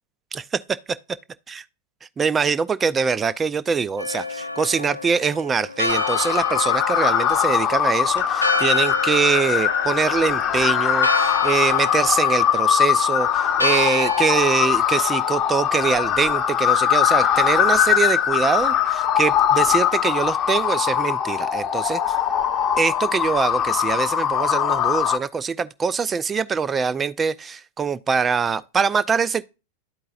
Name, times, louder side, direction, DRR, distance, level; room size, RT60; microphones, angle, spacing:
voice 1, 0.3-0.8 1.5-1.6 2.2-22.2 22.8-29.4, right 6 dB, 20° right, 0.4 m, -23 dB
Church bell, 4.0-14.6, left 2 dB, 90° left, 0.4 m, -29 dB
sound 1, 5.9-25.2, left 9 dB, 30° left, 0.8 m, -21 dB
12.0 x 4.6 x 2.4 m
figure-of-eight pair, 90°, 0 cm